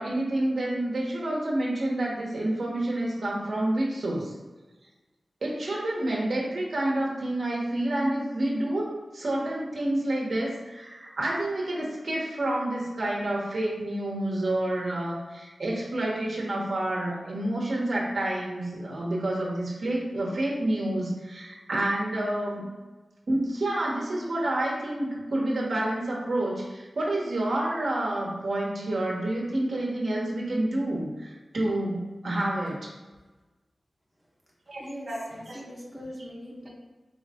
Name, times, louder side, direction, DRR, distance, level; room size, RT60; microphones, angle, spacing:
voice 1, 0.0-4.3 5.4-8.9 9.1-22.7 23.3-32.9 34.7-35.2 35.5-35.6, right 1 dB, 70° right, -4 dB, 1.3 m, -29 dB
voice 2, 34.7-36.7, equal, 5° left, -5 dB, 1.4 m, -41 dB
4.5 x 3.1 x 3.7 m, 1.2 s
wide cardioid pair, 65°, 0 cm